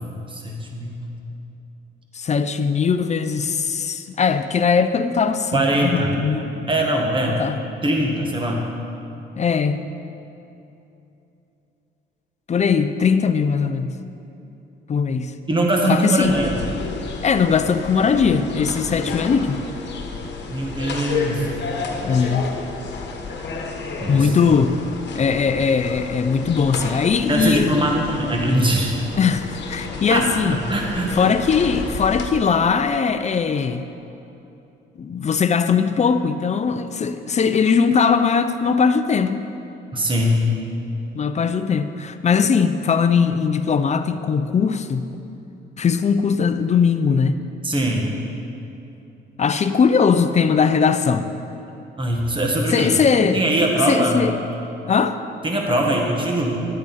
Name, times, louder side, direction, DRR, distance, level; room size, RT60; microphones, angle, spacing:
voice 1, 0.3-1.0 5.5-6.1 6.7-7.4 7.8-8.6 15.5-16.6 20.5-21.5 24.0-24.3 27.3-29.0 30.1-31.2 39.9-40.5 47.6-48.1 52.0-52.9 53.2-54.2 55.4-56.5, right 1 dB, 25° right, 0 dB, 1.5 m, -21 dB
voice 2, 2.1-6.7 7.3-7.6 9.4-9.8 12.5-13.9 14.9-15.3 15.9-16.4 17.2-19.6 22.0-22.5 24.1-24.8 25.1-27.7 29.2-30.6 31.1-33.8 35.0-39.4 41.1-45.1 45.8-47.4 49.4-51.3 52.7-53.4 53.9-54.4 54.9-55.2, left 6 dB, 35° left, 10 dB, 0.5 m, -20 dB
sound 1, 16.2-32.3, left 4 dB, 60° left, 1.3 m, -31 dB
11.5 x 8.5 x 4.2 m, 2.9 s
cardioid pair, 90°, 20 cm